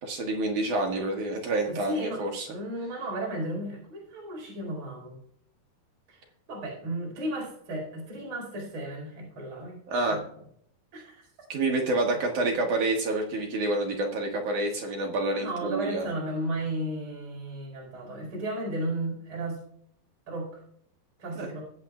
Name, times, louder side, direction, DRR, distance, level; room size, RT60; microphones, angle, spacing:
voice 1, 0.0-2.5 9.9-10.2 11.5-16.1 21.4-21.5, right 2 dB, 65° right, 1 dB, 2.2 m, -28 dB
voice 2, 1.7-2.2 2.5-5.2 6.1-6.2 6.5-9.8 10.1-10.2 10.9-11.2 15.3-19.6 20.3-20.5 21.2-21.6, right 1 dB, 30° right, -3 dB, 5.1 m, -34 dB
21.5 x 8.2 x 2.4 m, 0.67 s
omnidirectional pair, 4.7 m